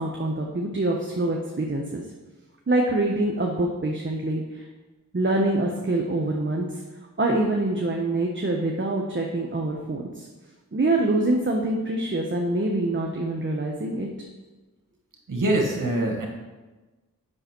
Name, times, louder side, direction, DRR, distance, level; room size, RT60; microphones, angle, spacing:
voice 1, 0.0-2.0 2.7-4.6 5.1-6.8 7.2-10.3 10.7-14.1, right 2 dB, 35° right, 0 dB, 1.1 m, -25 dB
voice 2, 15.3-16.3, right 1 dB, 60° right, 0 dB, 2.0 m, -24 dB
7.8 x 6.4 x 4.5 m, 1.2 s
cardioid pair, 45°, 35 cm